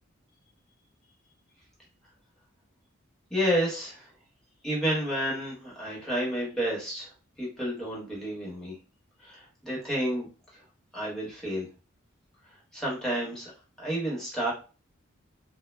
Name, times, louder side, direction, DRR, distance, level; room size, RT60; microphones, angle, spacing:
voice 1, 3.3-4.1 4.6-7.1 7.4-8.8 9.2-10.3 10.9-11.7 12.7-13.5 13.8-14.5, equal, 5° left, -6 dB, 0.9 m, -30 dB
2.0 x 2.0 x 3.1 m, 0.35 s
head